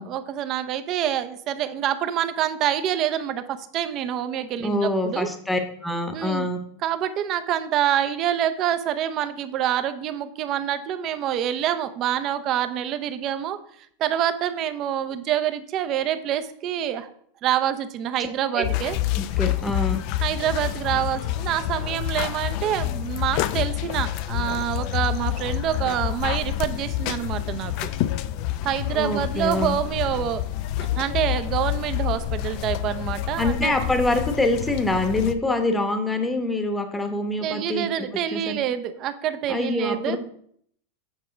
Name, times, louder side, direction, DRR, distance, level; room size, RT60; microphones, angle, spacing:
voice 1, 0.0-5.3 6.1-6.5 6.8-13.6 14.0-17.1 17.4-19.0 20.2-27.9 28.6-30.4 31.0-33.7 37.4-40.2, right 10 dB, 35° right, 10 dB, 0.6 m, -26 dB
voice 2, 4.6-6.6 18.5-18.6 19.1-20.0 28.9-29.8 33.4-38.6 39.5-40.2, left 2 dB, 10° left, 6 dB, 1.0 m, -25 dB
sound 1, 18.6-35.3, left 13 dB, 50° left, 0.4 m, -28 dB
8.0 x 3.6 x 5.1 m, 0.65 s
supercardioid pair, 140°, 0 cm